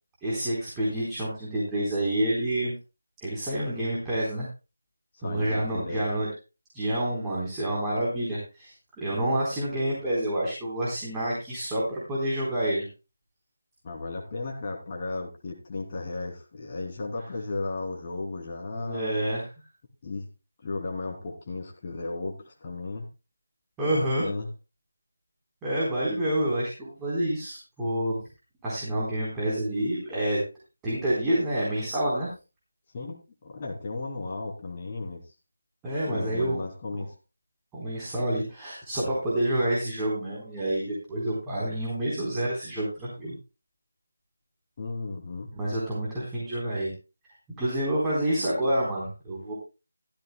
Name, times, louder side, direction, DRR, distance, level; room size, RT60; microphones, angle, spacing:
voice 1, 0.2-2.7 3.2-4.5 5.2-6.3 6.7-12.9 18.7-19.4 23.8-24.3 25.6-28.2 28.6-30.4 30.8-32.3 35.8-36.6 36.9-37.0 37.7-43.3 45.5-46.9 47.6-49.5, right 1 dB, 10° right, -7 dB, 3.9 m, -28 dB
voice 2, 5.1-6.0 13.8-19.0 20.0-20.3 20.6-23.1 23.9-24.5 32.9-35.3 36.1-37.1 44.8-45.5, left 3 dB, 30° left, -2 dB, 2.9 m, -35 dB
15.5 x 13.5 x 2.2 m, 0.30 s
figure-of-eight pair, 160°, 0 cm